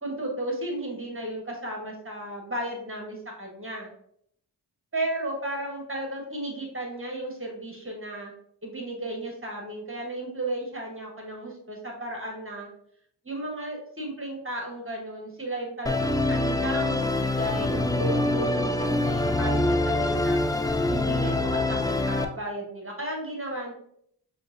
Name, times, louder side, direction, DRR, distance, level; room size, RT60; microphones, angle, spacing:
voice 1, 0.0-3.9 4.9-8.3 8.6-12.7 13.2-20.4 20.9-23.7, right 1 dB, 30° right, 0 dB, 1.1 m, -34 dB
Musical instrument, 15.9-22.3, left 2 dB, 10° left, 0.3 m, -25 dB
6.4 x 2.4 x 2.5 m, 0.68 s
cardioid pair, 50°, 42 cm